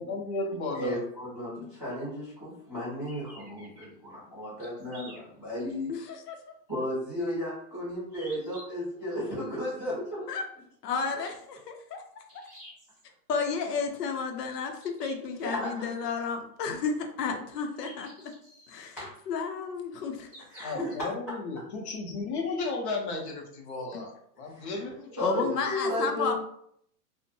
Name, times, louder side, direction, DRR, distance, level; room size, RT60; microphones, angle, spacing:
voice 1, 0.0-1.0 20.6-24.1 24.4-25.5, left 3 dB, 45° left, 1 dB, 0.6 m, -34 dB
voice 2, 0.7-5.9 6.7-10.2 15.4-15.9 19.0-19.1 20.5-21.3 24.5-24.7 25.2-26.3, equal, 10° left, -16 dB, 0.3 m, -34 dB
sound 1, 3.1-3.9 4.6-5.9 6.3-6.4 8.1-8.6 11.0-11.6 12.3-13.0 14.8-15.7 17.8-18.8 20.3-20.9, equal, 15° right, 0.7 m, -51 dB
voice 3, 5.9-6.4 10.3-10.4 10.8-12.2 13.3-18.3 18.7-19.0 19.3-20.3 20.6-20.7 23.9-24.0 25.2-26.3, left 5 dB, 85° left, 4 dB, 0.7 m, -32 dB
2.6 x 2.1 x 2.6 m, 0.69 s
supercardioid pair, 160°, 47 cm